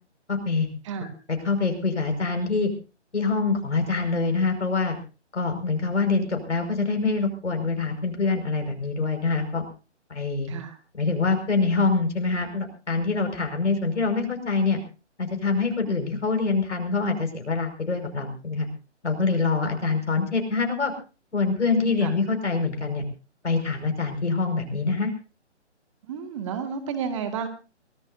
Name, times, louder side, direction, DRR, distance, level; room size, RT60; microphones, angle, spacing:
voice 1, 0.3-0.7 1.0-1.1 1.4-2.7 3.1-5.0 5.3-9.6 10.1-10.5 11.0-14.8 15.2-18.7 19.0-20.9 21.3-23.0 23.4-25.1, left 4 dB, 75° left, 4 dB, 5.5 m, -25 dB
voice 2, 19.6-19.9 22.0-22.1 26.0-27.5, right 7 dB, 25° right, 8 dB, 2.0 m, -32 dB
24.0 x 17.0 x 2.7 m, 0.34 s
figure-of-eight pair, 155°, 35 cm